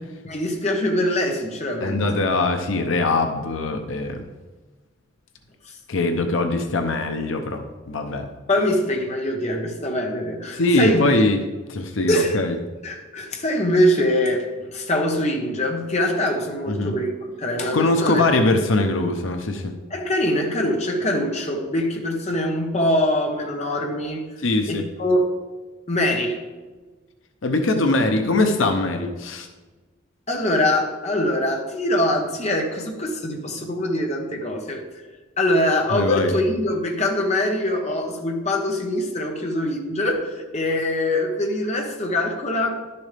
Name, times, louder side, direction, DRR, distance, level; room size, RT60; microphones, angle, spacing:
voice 1, 0.2-2.1 5.6-5.8 8.5-11.1 12.1-12.4 12.8-18.2 19.9-24.2 24.7-25.4 25.9-26.4 30.3-34.8 35.4-42.8, left 1 dB, 35° left, 2 dB, 1.1 m, -23 dB
voice 2, 1.8-4.2 5.9-8.3 10.5-11.4 11.7-12.6 16.7-16.9 17.7-19.7 24.4-24.9 27.4-29.5 35.9-36.3, left 2 dB, 85° left, 6 dB, 0.8 m, -22 dB
11.5 x 6.9 x 3.4 m, 1.3 s
head